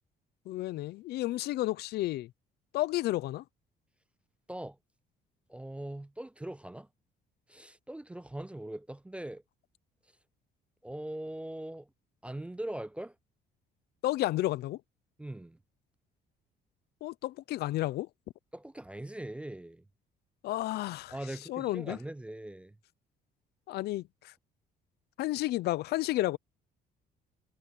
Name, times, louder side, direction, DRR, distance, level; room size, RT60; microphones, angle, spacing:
voice 1, 0.5-2.3 2.7-3.4 14.0-14.8 17.0-18.1 20.4-21.1 21.5-22.0 23.7-24.3 25.2-26.4, left 16 dB, 70° left, 0.6 m, -31 dB
voice 2, 5.5-6.9 7.5-9.4 10.8-11.9 12.2-13.2 15.2-15.6 18.5-19.8 21.1-22.7, right 1 dB, 5° right, 0.4 m, -41 dB
cardioid pair, 110°, 17 cm